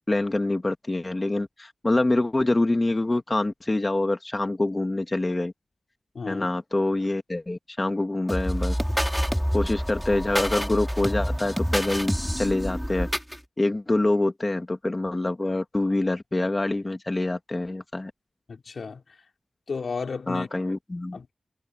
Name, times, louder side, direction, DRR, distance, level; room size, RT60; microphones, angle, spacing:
voice 1, 0.1-5.5 6.3-8.8 9.5-13.1 13.6-18.1 20.3-21.2, left 2 dB, 30° left, 1.9 m, -25 dB
voice 2, 6.1-6.5 18.5-19.2 19.7-20.5 21.1-21.3, left 5 dB, 80° left, 3.6 m, -33 dB
sound 1, 8.3-13.4, equal, ahead, 2.6 m, -27 dB
wide cardioid pair, 80°, 0 cm